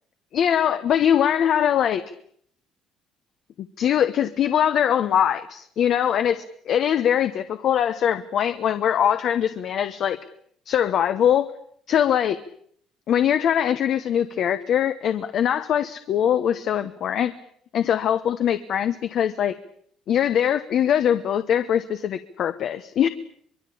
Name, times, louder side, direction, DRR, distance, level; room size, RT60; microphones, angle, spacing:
voice 1, 0.3-2.0 3.8-10.2 10.7-11.5 11.9-12.4 13.1-17.3 17.7-19.5 20.1-23.1, left 9 dB, 45° left, 10 dB, 1.0 m, -22 dB
24.0 x 23.0 x 8.6 m, 0.65 s
cardioid pair, 175°, 0 cm